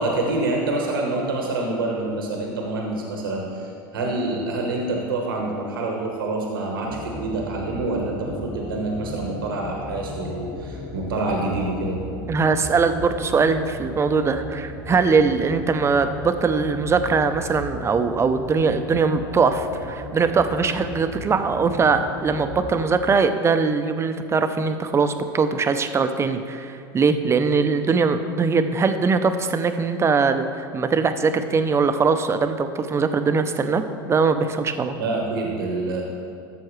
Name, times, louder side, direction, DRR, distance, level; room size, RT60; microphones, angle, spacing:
voice 1, 0.0-12.0 35.0-36.0, right 2 dB, 90° right, 0 dB, 1.2 m, -26 dB
sound 1, 6.8-22.6, left 1 dB, 80° left, 1.8 m, -36 dB
voice 2, 12.3-35.0, right 4 dB, 25° right, 9 dB, 0.6 m, -21 dB
13.5 x 7.1 x 3.2 m, 2.4 s
hypercardioid pair, 90°, 11 cm